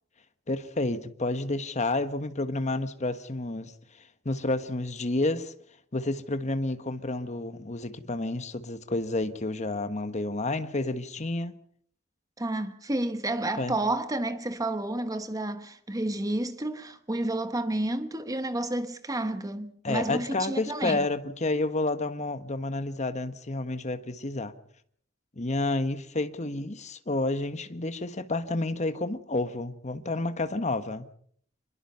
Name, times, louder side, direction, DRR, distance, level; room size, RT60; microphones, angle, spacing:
voice 1, 0.5-5.5 5.9-11.5 13.6-13.8 19.8-24.5 25.4-31.1, left 2 dB, 35° left, 1.3 m, -30 dB
voice 2, 12.4-21.1, right 1 dB, 15° right, 1.1 m, -30 dB
26.0 x 21.5 x 5.6 m
head